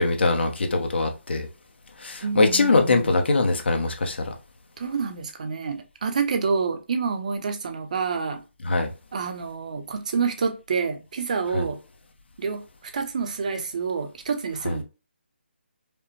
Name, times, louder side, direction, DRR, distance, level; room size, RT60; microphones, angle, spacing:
voice 1, 0.0-1.5 2.0-4.3 8.6-8.9 11.5-11.7 14.6-14.8, left 3 dB, 60° left, 0.9 m, -22 dB
voice 2, 2.2-3.1 4.8-8.4 9.1-11.8 12.4-12.6 12.9-14.8, right 5 dB, 35° right, 0.6 m, -28 dB
5.0 x 2.1 x 2.9 m
hypercardioid pair, 170°, 7 cm